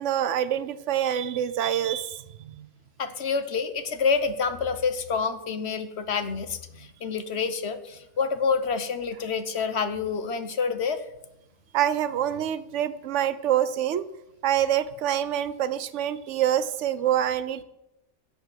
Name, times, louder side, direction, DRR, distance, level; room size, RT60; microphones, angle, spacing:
voice 1, 0.0-2.2 2.6-2.7 11.7-14.1 14.4-17.6, right 10 dB, 75° right, 13 dB, 1.0 m, -26 dB
voice 2, 3.0-11.1, left 5 dB, 65° left, 10 dB, 1.2 m, -28 dB
11.0 x 6.9 x 8.0 m, 0.87 s
omnidirectional pair, 1.2 m